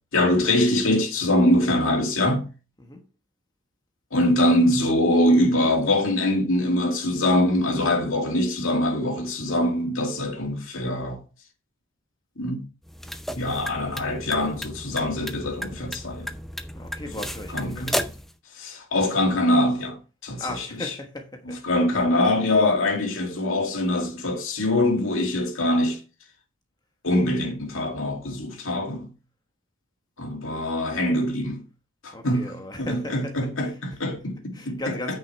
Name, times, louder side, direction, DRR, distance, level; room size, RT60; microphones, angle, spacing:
voice 1, 0.1-2.5 4.1-11.2 12.4-12.6 13.3-16.3 17.1-17.2 17.5-18.0 18.6-20.9 21.5-26.0 27.0-29.1 30.2-31.6 32.0-35.2, left 1 dB, 70° left, 2.3 m, -23 dB
sound 1, 12.8-18.3, equal, ahead, 0.6 m, -33 dB
voice 2, 16.8-18.1 20.4-21.6 22.3-22.4 32.1-33.4 33.6-33.7 34.5-35.2, left 1 dB, 20° left, 1.2 m, -36 dB
9.5 x 5.6 x 4.6 m
head